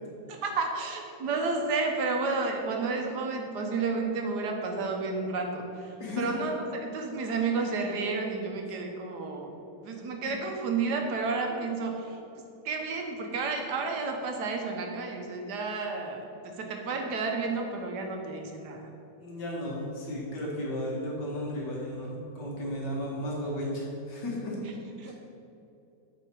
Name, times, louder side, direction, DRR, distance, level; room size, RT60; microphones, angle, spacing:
voice 1, 0.3-9.5 9.8-12.2 12.6-16.2 16.4-18.9 24.6-24.7 25.0-25.1, right 4 dB, 75° right, 2 dB, 1.5 m, -31 dB
voice 2, 6.0-6.5 11.5-11.6 19.2-24.6 25.0-25.1, left 1 dB, 90° left, -4 dB, 2.3 m, -34 dB
8.8 x 4.9 x 4.6 m, 2.8 s
omnidirectional pair, 1.8 m